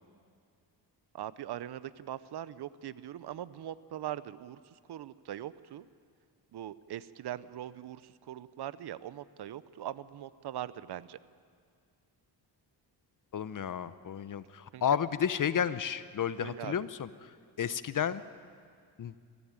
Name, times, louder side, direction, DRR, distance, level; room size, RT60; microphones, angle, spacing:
voice 1, 1.1-5.9 6.5-11.2 14.7-14.8 15.5-15.6 16.4-16.8, right 11 dB, 65° right, 17 dB, 0.7 m, -41 dB
voice 2, 13.3-17.1 17.6-18.2 19.0-19.1, left 8 dB, 45° left, 15 dB, 0.7 m, -32 dB
22.0 x 15.0 x 8.9 m, 2.2 s
cardioid pair, 110°, 43 cm